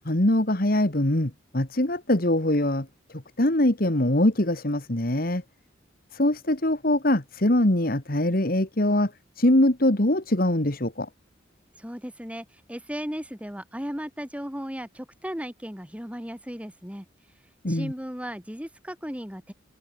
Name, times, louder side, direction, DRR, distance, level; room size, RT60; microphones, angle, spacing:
voice 1, 0.1-2.9 3.4-5.4 6.1-9.1 9.4-11.1 17.6-17.9, left 1 dB, 50° left, 2.1 m, -23 dB
voice 2, 11.8-17.0 17.6-19.5, equal, 5° right, 3.2 m, -36 dB
head